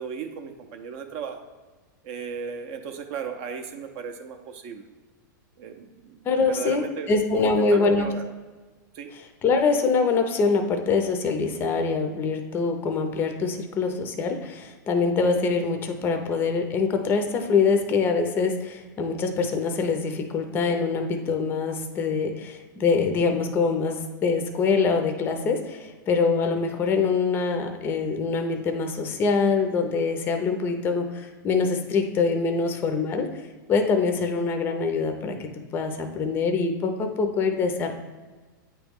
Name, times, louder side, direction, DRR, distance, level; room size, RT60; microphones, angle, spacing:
voice 1, 0.0-1.5 2.0-4.9 5.6-8.3 8.9-9.1, right 6 dB, 40° right, 5 dB, 0.5 m, -36 dB
voice 2, 6.3-8.1 9.4-33.3 33.7-35.3 35.7-37.9, left 4 dB, 20° left, 5 dB, 0.5 m, -24 dB
8.8 x 3.0 x 3.5 m, 1.3 s
supercardioid pair, 150°, 11 cm